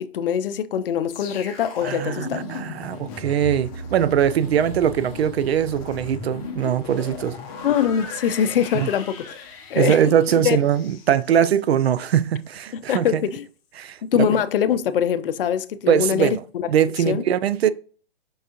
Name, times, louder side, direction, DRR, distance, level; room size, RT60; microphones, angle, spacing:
voice 1, 0.0-2.4 7.6-9.4 9.7-10.0 10.4-10.6 12.7-13.4 14.0-16.7 17.1-17.2, left 8 dB, 65° left, 0.5 m, -23 dB
sound 1, 1.1-12.2 12.5-12.7, left 4 dB, 20° left, 0.7 m, -37 dB
voice 2, 1.8-7.4 8.7-8.9 9.8-13.2 13.8-14.4 15.9-16.4 16.7-17.7, right 9 dB, 85° right, 0.5 m, -21 dB
5.4 x 3.4 x 2.8 m
hypercardioid pair, 165°, 30 cm